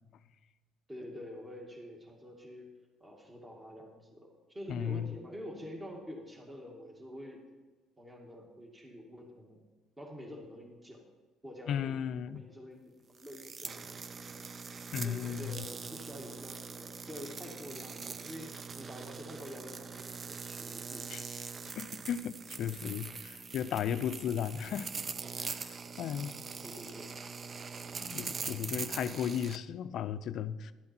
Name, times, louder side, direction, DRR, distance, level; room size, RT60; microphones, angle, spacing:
voice 1, 0.9-7.5 8.0-9.6 10.0-11.1 11.4-12.0 12.3-14.0 15.0-21.3 23.9-24.4 26.6-27.1, equal, 15° right, 1 dB, 2.0 m, -47 dB
voice 2, 4.7-5.1 11.7-12.4 14.9-15.6 21.1-21.2 21.8-24.9 25.4-26.3 28.0-30.7, left 9 dB, 60° left, 13 dB, 0.5 m, -35 dB
sound 1, 13.2-29.6, right 5 dB, 35° right, 0.5 m, -42 dB
12.0 x 8.6 x 4.4 m, 1.3 s
cardioid pair, 95°, 0 cm